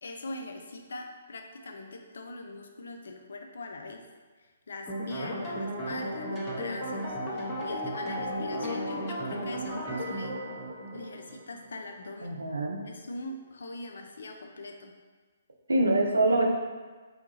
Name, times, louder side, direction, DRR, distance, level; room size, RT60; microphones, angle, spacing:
voice 1, 0.0-4.1 4.4-10.4 10.9-12.4 12.8-14.9, left 2 dB, 70° left, 3 dB, 0.4 m, -42 dB
sound 1, 4.9-11.9, right 1 dB, 15° left, 0.8 m, -35 dB
sound 2, 7.0-11.3, left 2 dB, 30° left, 1.3 m, -40 dB
voice 2, 12.2-12.8 15.7-16.4, right 2 dB, 85° right, 1 dB, 0.6 m, -24 dB
2.9 x 2.3 x 3.8 m, 1.4 s
figure-of-eight pair, 135°, 0 cm